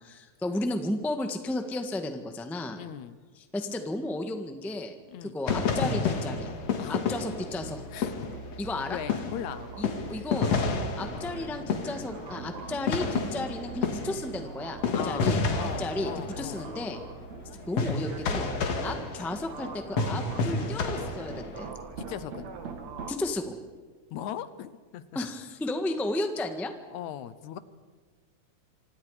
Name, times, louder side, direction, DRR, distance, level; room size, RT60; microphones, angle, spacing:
voice 1, 0.0-2.8 3.4-4.9 5.2-6.5 6.9-7.9 8.6-9.0 9.8-10.5 10.9-15.4 15.8-16.1 16.4-17.0 17.7-18.5 18.8-21.7 23.1-23.6 25.1-26.7, left 2 dB, ahead, 6 dB, 0.7 m, -33 dB
voice 2, 2.8-3.2 5.1-5.3 6.8-7.1 7.9-8.4 8.9-9.7 14.9-16.7 22.0-22.5 24.1-25.0 26.9-27.6, left 10 dB, 75° left, 14 dB, 2.2 m, -39 dB
sound 1, 5.5-8.8 9.1-21.7, left 4 dB, 60° left, 2.9 m, -30 dB
sound 2, 5.9-23.1, right 4 dB, 65° right, 3.0 m, -43 dB
27.0 x 26.0 x 5.0 m, 1.4 s
omnidirectional pair, 3.4 m